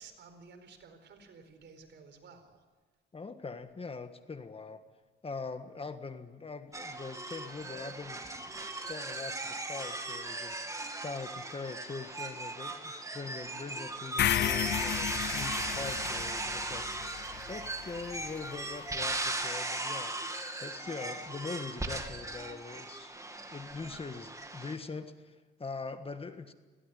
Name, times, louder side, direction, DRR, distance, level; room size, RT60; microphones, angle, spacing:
voice 1, 0.0-2.6, right 5 dB, 65° right, 4.5 m, -54 dB
voice 2, 3.1-4.8 5.2-8.2 8.9-17.1 17.5-20.2 20.6-23.1 23.5-26.5, left 4 dB, 30° left, 1.6 m, -42 dB
sound 1, 6.7-24.8, right 2 dB, 15° right, 2.5 m, -38 dB
sound 2, 14.2-18.3, left 11 dB, 60° left, 0.6 m, -33 dB
21.0 x 17.0 x 9.9 m
cardioid pair, 90°, 20 cm